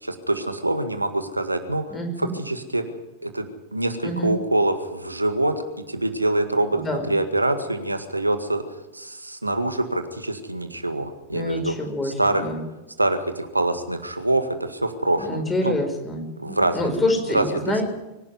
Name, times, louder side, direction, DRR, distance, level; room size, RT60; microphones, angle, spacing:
voice 1, 0.0-2.8 3.2-3.5 3.7-5.6 5.9-11.7 12.0-12.5 13.0-15.7 16.4-17.1 17.3-17.4, right 2 dB, 85° right, 8 dB, 1.8 m, -25 dB
voice 2, 1.9-2.3 4.0-4.3 6.7-7.1 11.3-12.6 15.2-17.8, left 1 dB, 15° left, 4 dB, 5.1 m, -27 dB
24.0 x 11.5 x 9.5 m, 1.0 s
figure-of-eight pair, 90°, 0 cm